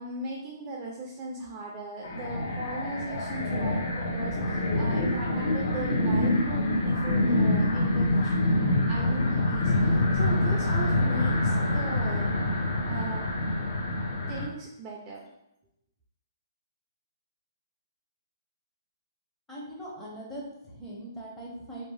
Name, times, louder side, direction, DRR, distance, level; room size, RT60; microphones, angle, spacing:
voice 1, 0.0-8.4 8.9-12.3 12.9-13.3 14.1-15.3, right 2 dB, 20° right, -2 dB, 0.4 m, -38 dB
sound 1, 2.0-14.5, left 1 dB, 55° left, 0.7 m, -26 dB
voice 2, 19.5-21.8, right 1 dB, 10° left, -5 dB, 0.7 m, -41 dB
2.6 x 2.0 x 3.2 m, 0.83 s
hypercardioid pair, 150°, 2 cm